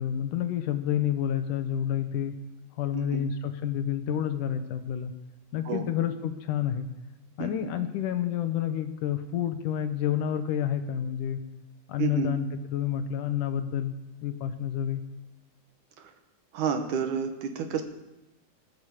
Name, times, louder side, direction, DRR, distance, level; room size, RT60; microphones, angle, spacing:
voice 1, 0.0-2.4 2.8-5.1 5.5-6.9 7.4-11.4 11.9-13.9 14.2-15.0, left 9 dB, 80° left, 9 dB, 2.5 m, -29 dB
voice 2, 12.0-12.4 16.5-17.8, right 6 dB, 70° right, 6 dB, 2.7 m, -29 dB
20.0 x 8.0 x 7.3 m, 0.99 s
omnidirectional pair, 3.8 m